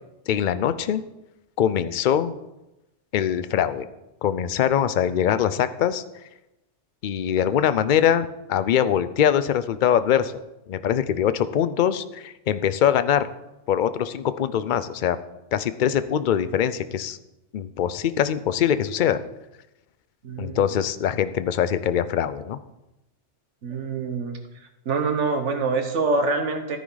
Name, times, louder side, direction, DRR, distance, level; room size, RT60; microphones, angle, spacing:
voice 1, 0.3-1.0 1.6-2.4 3.1-3.9 4.2-6.0 7.0-10.4 10.7-13.3 13.7-15.2 15.5-17.2 17.5-19.2 20.4-22.6, left 9 dB, 50° left, 13 dB, 0.6 m, -23 dB
voice 2, 20.2-20.7 23.6-24.4 24.8-26.8, right 4 dB, 85° right, 6 dB, 1.6 m, -25 dB
14.0 x 9.7 x 4.0 m, 0.94 s
omnidirectional pair, 1.2 m